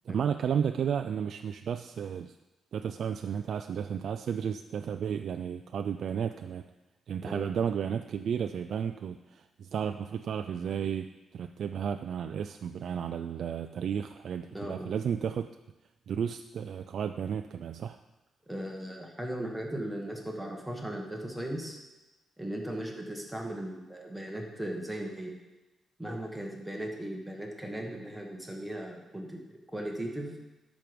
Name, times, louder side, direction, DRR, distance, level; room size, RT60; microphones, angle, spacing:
voice 1, 0.1-2.3 2.7-6.7 7.1-15.5 16.1-18.0, right 7 dB, 55° right, 7 dB, 0.3 m, -33 dB
voice 2, 14.5-14.9 18.5-21.8 22.4-25.3 26.0-30.3, right 1 dB, 5° right, 0 dB, 1.5 m, -37 dB
12.0 x 6.1 x 5.2 m, 1.1 s
cardioid pair, 155°, 0 cm